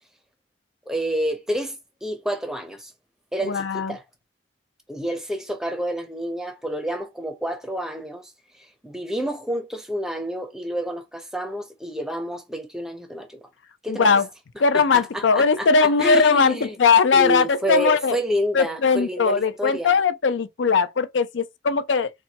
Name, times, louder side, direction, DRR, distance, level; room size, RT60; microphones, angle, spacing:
voice 1, 0.9-2.9 3.3-4.0 4.9-8.3 8.6-13.4 13.8-14.2 14.7-16.8 17.1-20.0, equal, 5° right, 0.5 m, -29 dB
voice 2, 3.4-4.0 13.9-14.3 14.6-18.2 18.5-22.1, left 5 dB, 85° left, 0.5 m, -19 dB
4.2 x 2.2 x 2.8 m
head